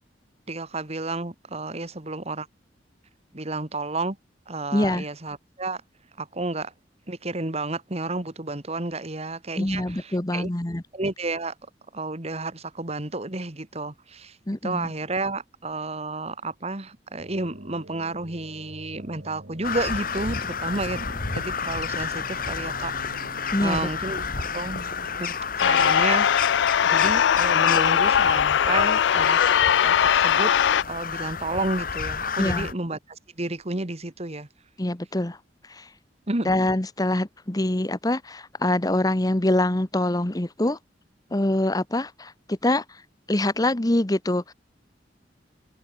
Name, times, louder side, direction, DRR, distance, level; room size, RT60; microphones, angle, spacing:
voice 1, 0.5-2.5 3.3-4.2 4.5-5.8 6.2-6.7 7.1-10.5 10.9-11.5 11.9-14.4 14.6-22.9 23.6-24.9 25.2-25.3 25.6-26.3 26.9-29.4 29.8-30.5 30.9-34.5 36.3-36.5, right 2 dB, 35° right, 2.0 m, -31 dB
voice 2, 4.7-5.1 9.6-10.8 14.5-14.9 23.5-23.9 32.4-32.7 34.8-35.4 35.6-35.9 36.4-40.8 41.3-43.0 43.3-44.5, left 1 dB, 20° left, 1.0 m, -25 dB
sound 1, 17.2-25.2, right 1 dB, 65° right, 2.5 m, -45 dB
Crow, 19.6-32.7, left 6 dB, 50° left, 1.7 m, -31 dB
sound 2, 25.6-30.8, left 8 dB, 75° left, 0.4 m, -20 dB
open air
head